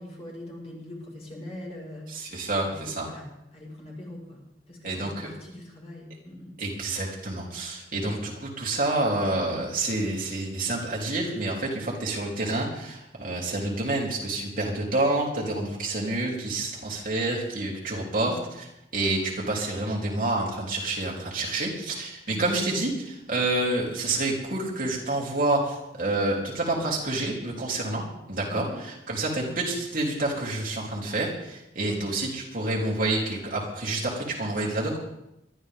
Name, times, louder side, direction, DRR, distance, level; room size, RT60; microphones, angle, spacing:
voice 1, 0.0-3.3 3.5-4.4 4.7-6.5 7.9-8.1 18.1-18.5 22.3-22.6 28.5-28.7 31.9-32.0, left 1 dB, 35° left, -3 dB, 5.4 m, -42 dB
voice 2, 2.1-3.1 4.8-5.3 6.6-35.0, right 2 dB, 50° right, -3 dB, 3.7 m, -28 dB
21.5 x 13.0 x 3.8 m, 0.87 s
head